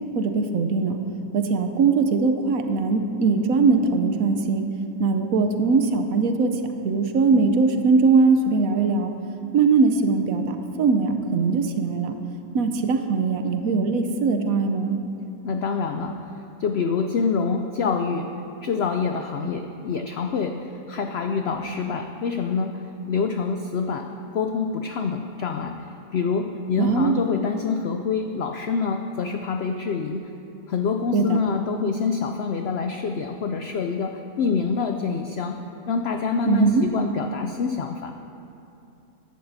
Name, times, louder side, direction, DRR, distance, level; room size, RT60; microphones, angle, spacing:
voice 1, 0.1-1.0 1.3-4.7 5.0-9.1 9.5-12.2 12.5-15.0 26.8-27.2 31.1-31.4 36.5-36.8, right 4 dB, 70° right, 6 dB, 1.1 m, -21 dB
voice 2, 15.4-16.2 16.6-18.3 18.6-22.8 23.1-24.1 24.3-25.8 26.1-30.3 30.7-35.6 35.9-38.2, left 5 dB, 90° left, 5 dB, 0.5 m, -26 dB
14.5 x 11.5 x 2.7 m, 2.8 s
omnidirectional pair, 1.6 m